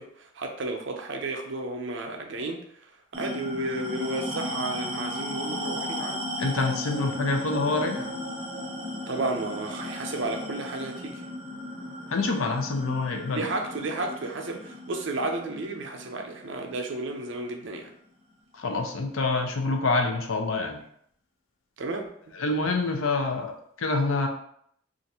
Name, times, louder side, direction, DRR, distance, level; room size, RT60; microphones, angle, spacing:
voice 1, 0.0-2.6 3.1-6.2 9.1-11.2 13.3-17.9 21.8-22.1, right 2 dB, 65° right, 3 dB, 0.5 m, -32 dB
sound 1, 3.1-18.0, left 1 dB, 25° right, 0.6 m, -36 dB
voice 2, 6.4-8.1 12.1-13.5 18.5-20.8 22.3-24.3, left 3 dB, 90° left, 4 dB, 0.5 m, -26 dB
2.5 x 2.5 x 4.1 m, 0.68 s
head